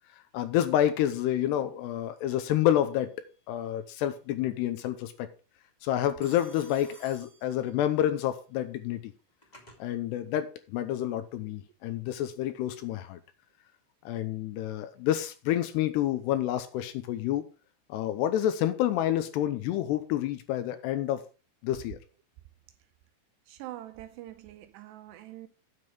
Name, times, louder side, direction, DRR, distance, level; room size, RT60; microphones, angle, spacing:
voice 1, 0.3-3.1 3.5-5.3 5.8-9.1 9.8-13.2 14.1-17.4 17.9-21.2 21.6-22.0, left 12 dB, 80° left, 2.7 m, -28 dB
Telephone, 2.6-3.1 6.2-8.1 9.0-9.8, equal, 60° left, 0.4 m, -54 dB
voice 2, 23.5-25.5, right 14 dB, 80° right, 2.6 m, -44 dB
9.7 x 7.5 x 4.8 m
omnidirectional pair, 5.3 m